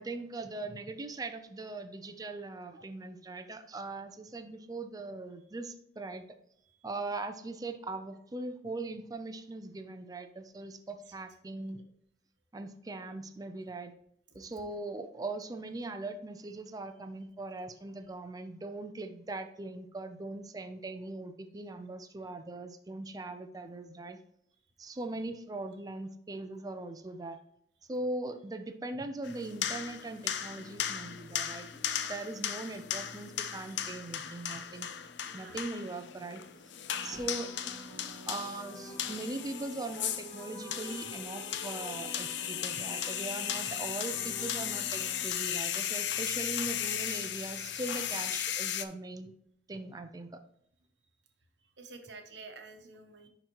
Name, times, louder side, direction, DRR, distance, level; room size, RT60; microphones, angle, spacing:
voice 1, 0.0-6.4 6.8-11.8 12.5-13.9 14.3-24.2 24.8-27.4 27.9-31.8 32.1-34.9 35.3-36.4 37.0-37.5 38.3-49.3 49.7-50.4, right 2 dB, 20° right, 7 dB, 0.5 m, -40 dB
sound 1, 29.2-48.8, left 10 dB, 75° left, 0.5 m, -36 dB
voice 2, 35.2-35.6 37.1-37.2 37.9-38.3 42.8-42.9 51.6-53.3, right 3 dB, 80° right, 5 dB, 1.0 m, -52 dB
sound 2, 36.9-45.3, equal, 15° left, 2.3 m, -48 dB
10.5 x 3.9 x 3.0 m, 0.72 s
head